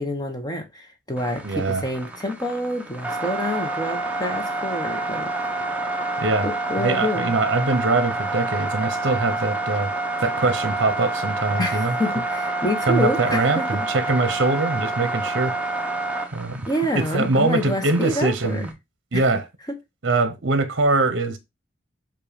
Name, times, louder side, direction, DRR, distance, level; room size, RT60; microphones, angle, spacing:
voice 1, 0.0-5.3 6.4-7.3 11.6-13.7 16.7-18.7 19.1-19.2 19.7-19.8, left 1 dB, 20° left, 1.0 m, -27 dB
sound 1, 1.2-18.7, right 2 dB, 5° right, 0.7 m, -28 dB
voice 2, 1.4-1.8 6.2-6.5 6.8-9.9 10.2-11.9 12.9-15.5 16.3-16.6 16.9-18.7 19.1-19.4 20.0-21.4, right 3 dB, 60° right, 0.8 m, -22 dB
7.4 x 2.6 x 5.1 m
head